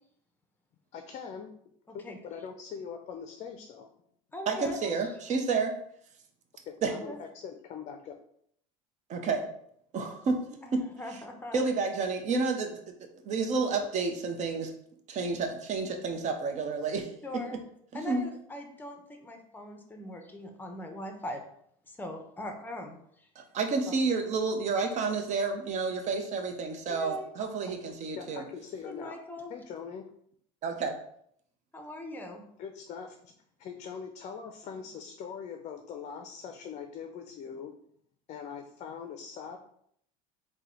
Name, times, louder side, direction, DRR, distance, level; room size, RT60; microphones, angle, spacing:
voice 1, 0.9-1.5 1.9-3.9 6.7-8.1 28.2-29.1 29.5-30.1 32.6-33.3 33.6-37.7 38.3-39.6, left 6 dB, 45° left, 5 dB, 0.5 m, -42 dB
voice 2, 1.9-2.2 4.3-4.8 7.0-7.2 10.6-11.6 17.2-17.6 17.9-21.4 21.9-23.3 23.8-23.9 26.9-27.3 28.8-29.5 31.7-32.4, left 1 dB, 10° left, 5 dB, 0.7 m, -41 dB
voice 3, 4.5-5.7 6.8-6.9 9.1-9.5 9.9-10.4 10.7-10.8 11.5-12.8 13.2-14.7 15.1-17.1 17.9-18.2 23.4-28.4 30.6-30.9, right 4 dB, 45° right, 4 dB, 0.8 m, -30 dB
3.8 x 2.2 x 4.3 m, 0.68 s
supercardioid pair, 100°, 16 cm